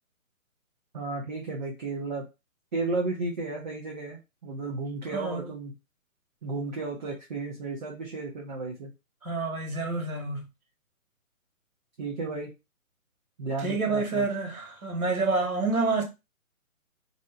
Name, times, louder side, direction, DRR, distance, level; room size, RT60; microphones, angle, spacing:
voice 1, 0.9-2.2 2.7-5.7 6.4-8.9 12.0-12.5 13.4-14.3, right 3 dB, 35° right, 0.6 m, -33 dB
voice 2, 5.1-5.5 9.2-10.4 13.6-16.0, right 3 dB, 85° right, 1.1 m, -28 dB
2.6 x 2.0 x 2.7 m
figure-of-eight pair, 140°, 42 cm